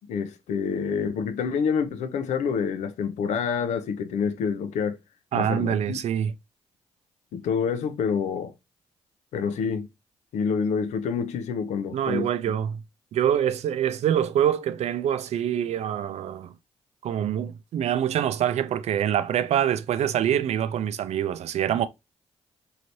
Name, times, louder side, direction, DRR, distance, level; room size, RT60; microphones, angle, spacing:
voice 1, 0.1-5.0 5.3-6.0 7.3-8.5 9.3-9.9 10.3-12.6, left 6 dB, 75° left, 0.5 m, -27 dB
voice 2, 5.3-6.3 11.9-12.8 13.1-16.5 17.0-21.9, right 10 dB, 65° right, 0.4 m, -25 dB
3.1 x 2.7 x 2.6 m
supercardioid pair, 45°, 12 cm